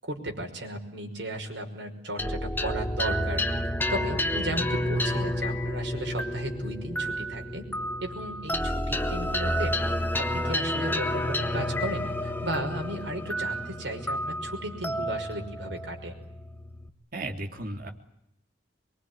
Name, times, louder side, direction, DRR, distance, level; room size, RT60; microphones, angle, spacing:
voice 1, 0.0-3.4 3.9-7.7 8.0-9.7 10.2-16.1, right 1 dB, 70° right, 3 dB, 5.7 m, -35 dB
sound 1, 2.2-16.9, left 1 dB, 10° left, 1.5 m, -30 dB
voice 2, 17.1-17.9, right 2 dB, 50° right, 3 dB, 3.2 m, -34 dB
24.0 x 23.5 x 9.7 m, 0.77 s
head